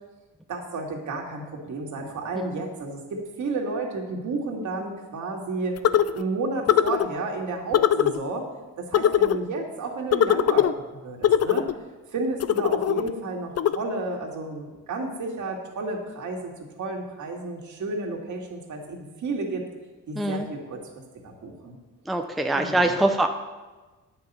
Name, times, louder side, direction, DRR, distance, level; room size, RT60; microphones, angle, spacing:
voice 1, 0.5-5.8 6.1-8.5 8.8-10.7 10.9-11.7 12.1-16.5 16.8-19.7 20.1-20.8 21.2-21.8 22.5-23.0, right 3 dB, 60° right, 0 dB, 2.3 m, -31 dB
sound 1, 5.8-6.2 6.7-7.1 7.7-8.2 8.9-9.4 10.1-10.7 11.2-11.7 12.4-13.1 13.6-13.8, left 10 dB, 50° left, 0.5 m, -20 dB
voice 2, 20.2-20.5 22.1-23.3, right 1 dB, ahead, 4 dB, 0.6 m, -24 dB
9.7 x 5.8 x 8.2 m, 1.2 s
cardioid pair, 95°, 33 cm